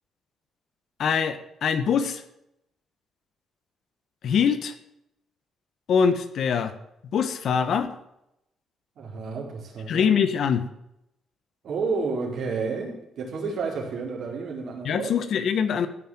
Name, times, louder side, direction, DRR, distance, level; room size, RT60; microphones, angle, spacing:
voice 1, 1.0-2.2 4.2-4.7 5.9-6.7 7.1-7.9 9.9-10.7 14.8-15.9, left 7 dB, 65° left, 11 dB, 1.3 m, -23 dB
voice 2, 9.0-10.1 11.6-15.1, right 4 dB, 65° right, -2 dB, 4.5 m, -30 dB
15.0 x 5.7 x 9.1 m, 0.81 s
cardioid pair, 90°, 0 cm